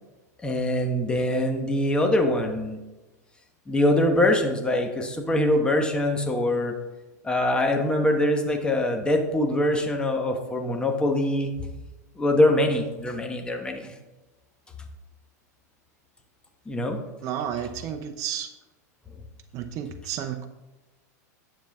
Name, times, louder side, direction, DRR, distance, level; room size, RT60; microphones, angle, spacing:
voice 1, 0.4-2.8 3.7-6.7 7.2-11.5 12.2-13.9 16.7-17.0, left 1 dB, 10° left, 3 dB, 1.3 m, -23 dB
voice 2, 17.2-18.5 19.5-20.5, right 9 dB, 40° right, 5 dB, 0.7 m, -32 dB
10.0 x 7.2 x 3.6 m, 1.1 s
hypercardioid pair, 120°, 9 cm